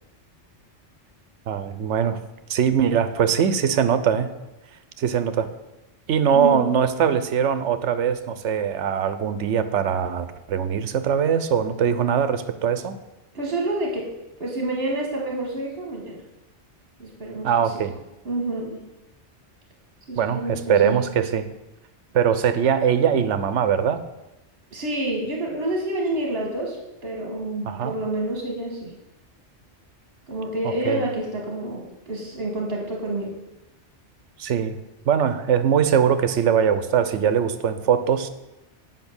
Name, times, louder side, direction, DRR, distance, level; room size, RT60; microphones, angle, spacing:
voice 1, 1.5-2.2 2.5-4.3 5.0-5.5 6.1-13.0 17.4-17.9 20.1-21.5 22.1-24.0 27.6-27.9 30.8-31.0 34.4-34.8 35.1-38.3, right 8 dB, 80° right, 12 dB, 1.0 m, -21 dB
voice 2, 6.3-6.7 13.3-14.1 14.4-16.2 17.0-17.8 18.2-18.8 20.1-21.0 24.7-26.8 27.0-28.9 30.3-33.4, right 1 dB, 60° right, -1 dB, 1.7 m, -28 dB
8.4 x 5.5 x 7.1 m, 0.97 s
omnidirectional pair, 1.2 m